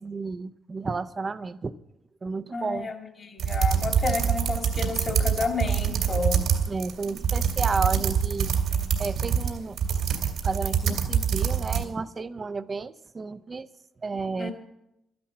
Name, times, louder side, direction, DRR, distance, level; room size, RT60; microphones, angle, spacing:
voice 1, 0.0-1.7 2.2-2.9 6.7-8.5 9.0-9.8 10.4-13.7 14.0-14.5, right 4 dB, 35° right, 13 dB, 0.7 m, -32 dB
voice 2, 2.5-6.4 14.4-14.5, left 3 dB, 40° left, 4 dB, 2.0 m, -30 dB
sound 1, 3.4-11.8, right 7 dB, 70° right, 2.1 m, -25 dB
12.0 x 10.5 x 7.5 m, 0.87 s
cardioid pair, 90°, 0 cm